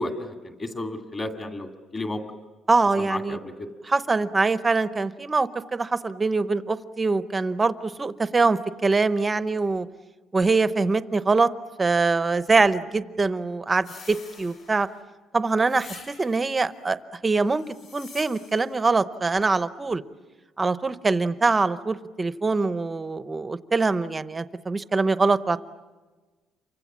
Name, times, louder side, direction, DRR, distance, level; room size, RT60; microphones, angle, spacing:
voice 1, 0.0-2.2 3.0-3.7, left 2 dB, 20° left, 6 dB, 2.2 m, -32 dB
voice 2, 2.7-3.4 3.8-9.9 10.3-11.5 11.8-14.9 15.3-17.0 17.2-17.6 17.9-20.0 20.6-25.6, right 3 dB, 15° right, 14 dB, 0.8 m, -23 dB
sound 1, 13.8-15.0 15.7-16.5 17.5-18.8, left 4 dB, 45° left, 6.3 m, -46 dB
29.0 x 25.0 x 7.4 m, 1.3 s
cardioid pair, 175°, 0 cm